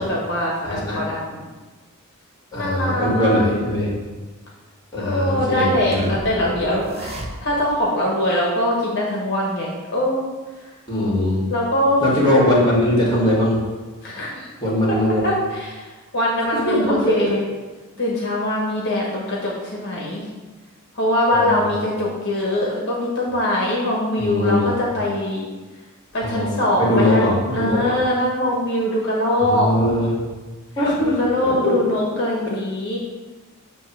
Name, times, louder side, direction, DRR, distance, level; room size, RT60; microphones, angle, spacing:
voice 1, 0.0-1.4 2.5-3.5 5.0-10.2 10.6-10.7 11.5-12.0 14.0-14.5 15.2-15.9 16.1-17.5 18.0-20.2 20.9-25.5 26.1-29.7 31.0-33.0, left 1 dB, 55° left, -4 dB, 1.2 m, -22 dB
voice 2, 0.6-1.0 2.5-3.9 4.9-6.1 10.9-11.4 12.0-13.6 14.6-15.2 16.5-17.3 21.3-21.7 24.2-24.8 26.2-26.5 26.8-27.9 29.4-30.2 30.8-31.2 31.6-31.7, left 1 dB, 20° left, -5 dB, 1.9 m, -20 dB
sound 1, 5.9-7.8, right 1 dB, 30° right, 0.7 m, -33 dB
7.1 x 3.0 x 6.0 m, 1.3 s
head